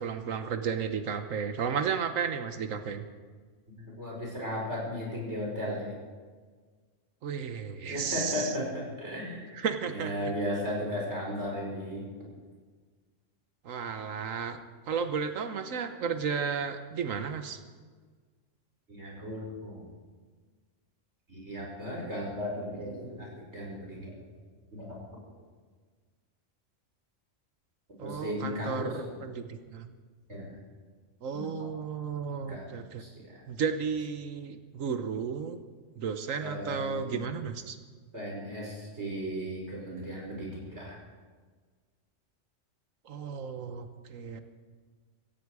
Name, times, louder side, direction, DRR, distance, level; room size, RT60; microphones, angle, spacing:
voice 1, 0.0-3.0 7.2-8.5 9.5-10.3 13.6-14.6 14.9-17.6 28.0-29.9 31.2-33.0 33.5-35.6 36.0-37.8 43.0-44.4, right 6 dB, 85° right, 8 dB, 1.4 m, -33 dB
voice 2, 3.8-5.9 7.9-9.5 9.9-12.0 18.9-19.9 21.3-24.1 24.7-25.2 28.0-29.2 30.3-30.6 31.6-31.7 32.4-33.4 36.4-37.2 38.1-41.0, equal, 55° right, -3 dB, 5.7 m, -36 dB
17.0 x 15.5 x 4.8 m, 1.5 s
omnidirectional pair, 1.3 m